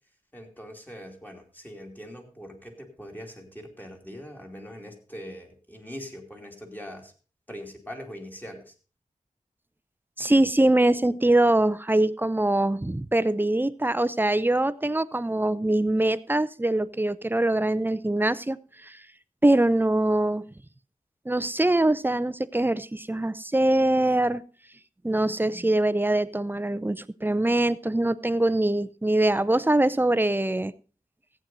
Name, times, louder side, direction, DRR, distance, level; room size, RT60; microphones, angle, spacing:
voice 1, 0.3-7.1 7.5-8.7, equal, 15° left, 2 dB, 2.7 m, -42 dB
voice 2, 10.2-18.6 18.8-19.0 19.4-20.4 21.3-24.4 25.0-30.7, right 1 dB, 15° right, 15 dB, 0.6 m, -23 dB
14.5 x 8.9 x 4.0 m, 0.36 s
wide cardioid pair, 80°, 14 cm